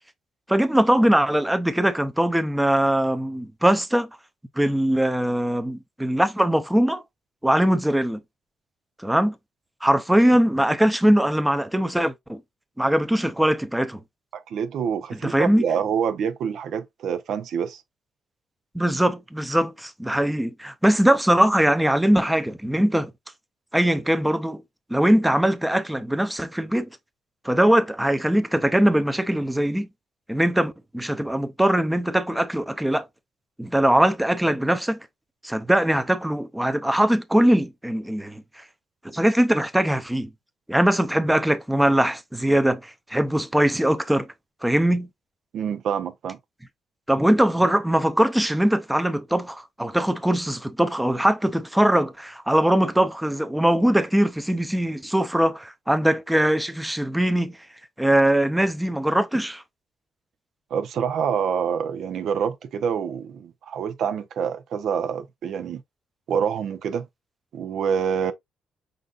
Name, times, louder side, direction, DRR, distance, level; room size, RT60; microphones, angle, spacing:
voice 1, 0.5-4.1 4.6-7.0 7.4-8.2 9.0-9.3 9.8-12.4 12.8-14.0 15.2-15.6 18.7-23.1 23.7-24.6 24.9-26.9 27.4-29.9 30.3-33.1 33.6-35.0 35.4-38.4 39.0-40.3 40.7-44.3 44.6-45.1 47.1-57.6 58.0-59.6, right 1 dB, 5° right, 0.6 m, -21 dB
voice 2, 14.3-17.8 45.5-46.4 60.7-65.8 66.3-67.1 67.5-68.3, right 7 dB, 75° right, 0.7 m, -26 dB
5.3 x 3.9 x 2.4 m
cardioid pair, 100°, 0 cm